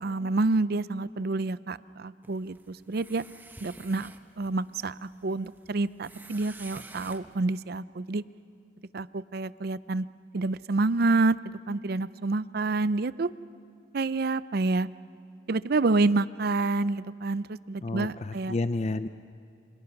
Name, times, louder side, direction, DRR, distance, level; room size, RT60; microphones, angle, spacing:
voice 1, 0.0-3.2 3.6-4.1 4.4-8.2 8.9-10.0 10.3-13.3 13.9-14.9 15.5-18.5, right 3 dB, 55° right, 16 dB, 0.5 m, -28 dB
sound 1, 2.2-7.4, right 2 dB, 10° right, 1.0 m, -50 dB
voice 2, 17.8-19.1, left 2 dB, 35° left, 11 dB, 0.5 m, -30 dB
28.5 x 26.0 x 6.0 m, 2.6 s
head